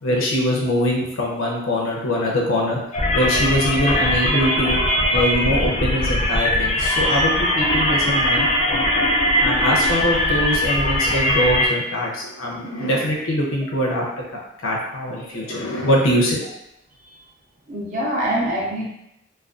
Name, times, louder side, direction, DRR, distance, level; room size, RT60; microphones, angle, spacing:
voice 1, 0.0-2.8 3.1-8.8 9.4-14.0 14.6-16.4, equal, 85° left, -2 dB, 0.5 m, -22 dB
sound 1, 2.9-11.7, left 1 dB, 30° left, 0.4 m, -20 dB
voice 2, 17.7-18.9, right 1 dB, 40° right, -4 dB, 0.6 m, -25 dB
2.4 x 2.2 x 2.3 m, 0.81 s
head